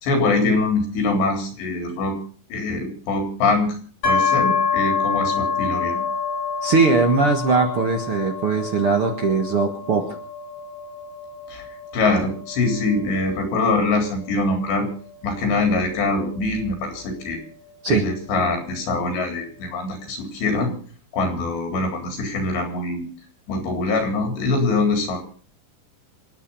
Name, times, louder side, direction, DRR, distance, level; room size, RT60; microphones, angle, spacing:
voice 1, 0.0-2.2 2.5-6.0 11.5-14.9 15.2-17.4 17.9-20.7 21.1-23.1 23.5-25.2, left 3 dB, 85° left, 5 dB, 5.8 m, -23 dB
sound 1, 4.0-17.7, left 5 dB, 30° left, 4.7 m, -27 dB
voice 2, 6.6-10.0 17.8-18.0, right 4 dB, 50° right, 4 dB, 1.7 m, -20 dB
27.5 x 9.2 x 5.5 m, 0.42 s
omnidirectional pair, 4.8 m